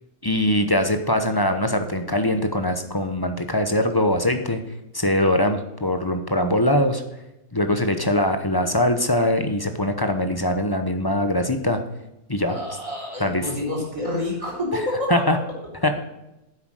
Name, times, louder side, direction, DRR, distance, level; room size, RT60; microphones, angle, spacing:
voice 1, 0.2-4.6 4.9-7.0 7.5-11.8 12.3-12.5 13.2-13.5 15.1-15.4 15.8-15.9, left 1 dB, 20° left, 7 dB, 0.7 m, -22 dB
voice 2, 12.5-15.1, left 1 dB, 20° right, -4 dB, 4.2 m, -28 dB
9.9 x 8.0 x 6.4 m, 0.90 s
omnidirectional pair, 1.6 m